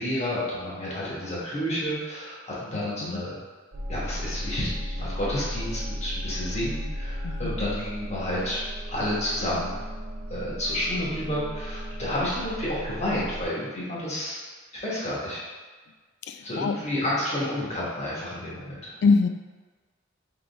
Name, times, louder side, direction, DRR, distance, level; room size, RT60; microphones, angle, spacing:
voice 1, 0.0-3.4 3.9-8.6 8.9-9.8 10.3-14.4 14.7-15.4 16.4-19.0, left 1 dB, 35° left, -7 dB, 1.4 m, -30 dB
sound 1, 3.7-13.4, equal, 40° right, 0.6 m, -35 dB
voice 2, 7.2-7.6 16.3-16.8 19.0-19.3, left 4 dB, 60° left, 8 dB, 0.3 m, -23 dB
3.8 x 3.4 x 3.4 m, 1.4 s
head